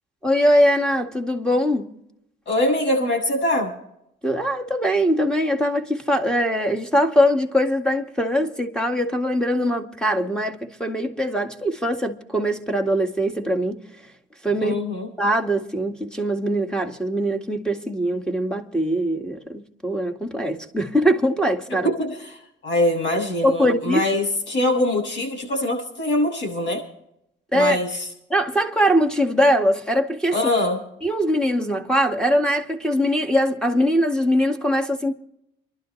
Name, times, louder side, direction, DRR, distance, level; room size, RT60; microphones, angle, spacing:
voice 1, 0.2-1.9 4.2-13.8 14.4-14.8 15.2-21.9 23.4-24.0 27.5-27.8 28.3-30.4 31.0-35.1, equal, 5° left, 2.0 m, -22 dB
voice 2, 2.5-3.7 14.6-15.1 21.8-26.8 27.5-28.1 30.3-30.8, left 1 dB, 65° left, 7.3 m, -23 dB
28.5 x 12.0 x 3.3 m
cardioid pair, 90°, 20 cm